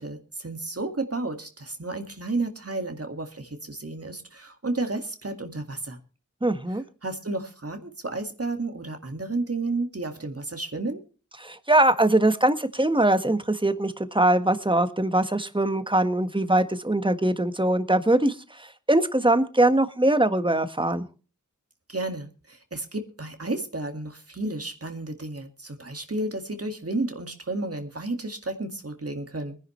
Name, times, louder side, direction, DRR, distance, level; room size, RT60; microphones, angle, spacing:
voice 1, 0.0-6.0 7.0-11.0 21.9-29.6, right 2 dB, 50° right, 5 dB, 2.1 m, -32 dB
voice 2, 6.4-6.8 11.4-21.0, right 1 dB, 15° right, 9 dB, 1.5 m, -22 dB
23.5 x 10.5 x 3.2 m, 0.35 s
wide cardioid pair, 60°, 31 cm